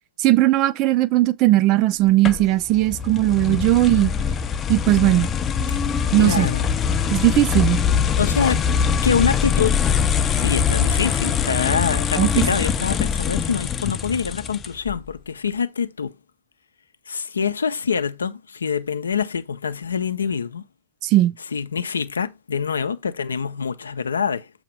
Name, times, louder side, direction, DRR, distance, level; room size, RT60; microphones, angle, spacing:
voice 1, 0.2-4.1 4.7-5.3 6.1-6.5 7.1-7.8 12.2-12.4 21.0-21.3, right 16 dB, 40° right, 0.5 m, -18 dB
sound 1, 2.2-14.9, left 7 dB, 25° left, 0.5 m, -23 dB
voice 2, 6.2-6.7 7.0-7.1 8.2-8.6 9.0-9.8 10.3-16.2 17.1-20.7 21.5-24.5, left 6 dB, 75° left, 0.5 m, -25 dB
7.4 x 2.9 x 5.3 m
figure-of-eight pair, 90°, 0 cm